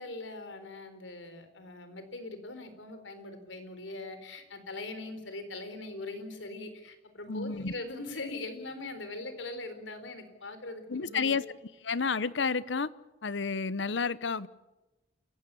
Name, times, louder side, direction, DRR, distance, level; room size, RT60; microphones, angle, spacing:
voice 1, 0.0-11.4, left 2 dB, 90° left, 4.1 m, -41 dB
voice 2, 7.3-7.7 10.9-11.4 11.8-12.9 13.2-14.5, left 5 dB, 70° left, 0.8 m, -30 dB
28.0 x 15.5 x 8.5 m
head